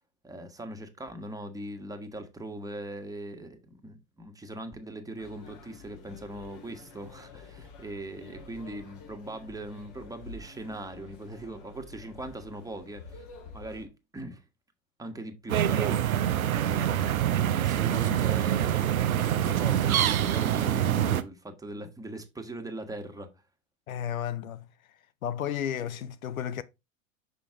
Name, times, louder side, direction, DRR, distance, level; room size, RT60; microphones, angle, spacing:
voice 1, 0.2-13.2 13.5-14.4 15.0-16.0 16.6-18.9 19.3-23.3, right 1 dB, 10° right, 1.4 m, -40 dB
sound 1, 5.2-13.9, left 3 dB, 50° left, 2.7 m, -49 dB
sound 2, 15.5-21.2, right 11 dB, 90° right, 0.6 m, -25 dB
voice 2, 23.9-24.7 25.2-26.6, left 9 dB, 85° left, 0.6 m, -33 dB
6.2 x 5.2 x 3.6 m
hypercardioid pair, 90°, 41 cm